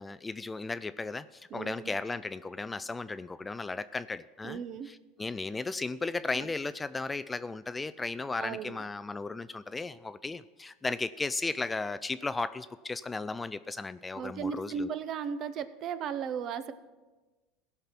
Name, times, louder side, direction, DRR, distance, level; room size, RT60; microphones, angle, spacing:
voice 1, 0.0-14.9, left 3 dB, 15° left, 14 dB, 0.3 m, -35 dB
voice 2, 1.5-1.9 4.4-4.9 6.3-6.5 8.4-8.9 14.2-16.7, right 7 dB, 45° right, 13 dB, 0.7 m, -36 dB
16.5 x 5.7 x 5.9 m, 1.2 s
supercardioid pair, 115°, 0 cm